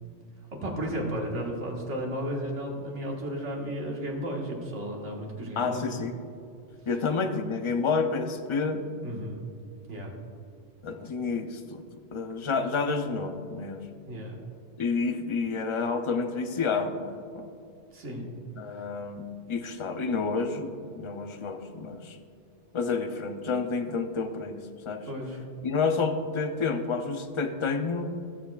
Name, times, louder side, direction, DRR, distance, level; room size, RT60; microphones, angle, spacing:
voice 1, 0.6-5.9 9.0-9.4 9.9-10.1 14.1-14.4 17.9-18.3 25.1-25.4, equal, 80° right, -1 dB, 1.8 m, -33 dB
voice 2, 5.6-6.1 6.9-8.8 10.8-11.8 12.1-13.9 14.8-17.5 18.6-22.2 22.7-25.1 25.6-28.1, left 4 dB, 40° left, 7 dB, 0.4 m, -29 dB
19.0 x 6.8 x 2.4 m, 2.5 s
omnidirectional pair, 1.2 m